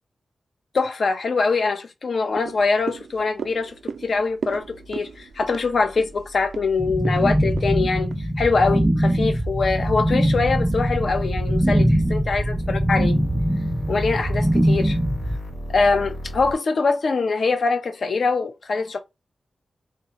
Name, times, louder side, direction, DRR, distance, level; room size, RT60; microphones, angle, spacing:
voice 1, 0.7-3.7 4.0-13.2 13.9-15.0 15.7-19.0, left 4 dB, 60° left, 0.6 m, -23 dB
sound 1, 2.3-8.8 9.2-9.3, right 6 dB, 75° right, 0.3 m, -37 dB
sound 2, 3.3-16.5, equal, 90° left, 1.4 m, -36 dB
sound 3, 6.8-15.3, right 1 dB, 10° right, 0.4 m, -22 dB
3.8 x 2.2 x 4.0 m
wide cardioid pair, 140°, 0 cm